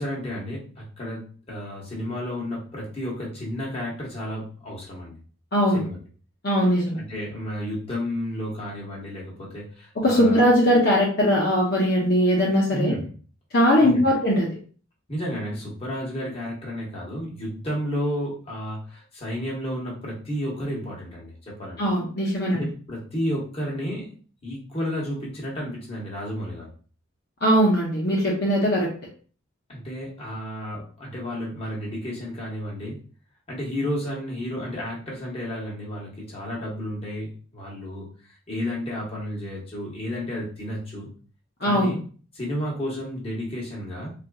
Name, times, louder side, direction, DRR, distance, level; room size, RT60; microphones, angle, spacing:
voice 1, 0.0-5.2 5.7-6.0 7.0-10.5 12.7-13.1 13.8-14.1 15.1-21.9 22.5-24.2 24.4-26.7 29.7-33.0 33.5-38.1 38.5-41.1 41.6-42.0 42.3-44.1, equal, 30° left, -4 dB, 1.1 m, -32 dB
voice 2, 5.5-5.8 6.4-7.0 10.0-12.9 13.5-14.5 21.8-22.6 27.4-28.9 41.6-41.9, equal, 50° left, -4 dB, 0.7 m, -20 dB
4.1 x 2.5 x 2.3 m, 0.40 s
head